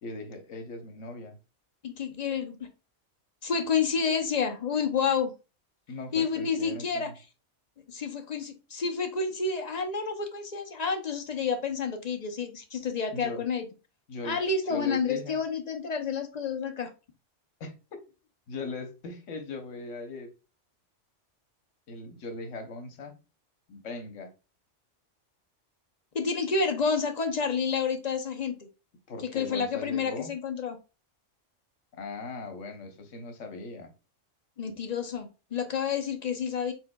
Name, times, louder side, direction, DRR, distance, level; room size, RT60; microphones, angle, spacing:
voice 1, 0.0-1.4 5.9-7.1 13.1-13.4 14.1-14.4 14.7-15.4 17.6-18.0 18.5-20.3 21.9-23.2 23.7-24.3 29.1-30.3 31.9-33.9, left 3 dB, 90° left, 1.2 m, -39 dB
voice 2, 1.8-2.7 3.4-5.3 6.1-7.1 7.9-13.6 14.2-16.9 26.1-28.6 29.3-30.8 34.6-36.7, left 5 dB, 45° left, 0.5 m, -29 dB
4.5 x 4.2 x 2.2 m
omnidirectional pair, 1.3 m